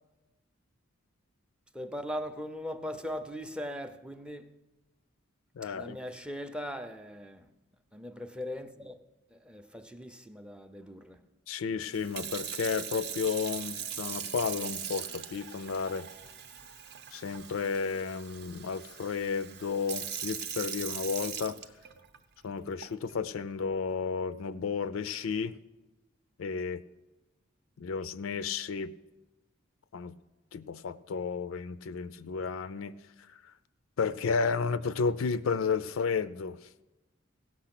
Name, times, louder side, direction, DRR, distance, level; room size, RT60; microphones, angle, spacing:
voice 1, 1.7-4.5 5.7-7.5 7.9-9.0 9.3-11.2, equal, 5° right, 0.5 m, -39 dB
voice 2, 5.6-6.0 11.5-16.1 17.1-21.6 22.4-25.6 26.4-26.8 27.8-28.9 29.9-30.2 30.5-33.0 33.3-33.5 34.0-36.6, left 5 dB, 75° left, 0.4 m, -32 dB
Sink (filling or washing) / Fill (with liquid), 11.9-22.2 22.8-23.1, right 8 dB, 55° right, 0.7 m, -40 dB
16.5 x 6.3 x 5.9 m
head